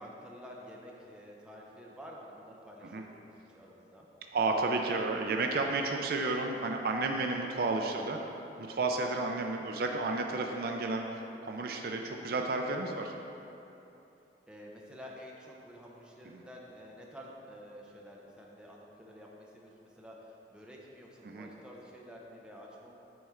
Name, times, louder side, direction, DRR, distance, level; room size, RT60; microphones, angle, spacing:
voice 1, 0.0-4.1 14.5-22.9, equal, 5° right, -3 dB, 0.7 m, -50 dB
voice 2, 4.3-8.2 8.6-13.1 16.3-16.4 21.2-21.5, right 3 dB, 55° right, 3 dB, 0.4 m, -32 dB
9.3 x 4.3 x 3.6 m, 2.9 s
head